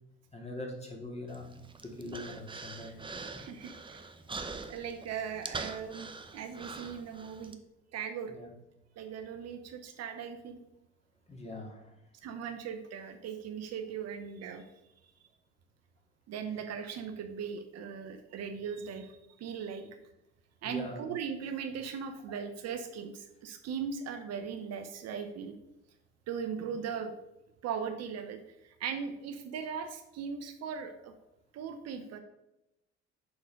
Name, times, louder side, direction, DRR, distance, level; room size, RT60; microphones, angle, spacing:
voice 1, 0.3-1.5 1.8-3.3 8.3-8.5 11.3-11.9 20.6-21.1, left 1 dB, 20° left, 0 dB, 2.2 m, -42 dB
Human voice, 1.3-7.5, right 3 dB, 15° right, 0.7 m, -43 dB
voice 2, 3.4-4.0 4.7-7.6 7.9-8.3 9.0-10.6 12.2-14.6 16.3-19.8 20.6-25.6 26.3-27.1 27.6-31.1 31.5-32.2, right 7 dB, 50° right, 7 dB, 0.8 m, -39 dB
6.8 x 3.9 x 5.2 m, 0.90 s
hypercardioid pair, 65°, 33 cm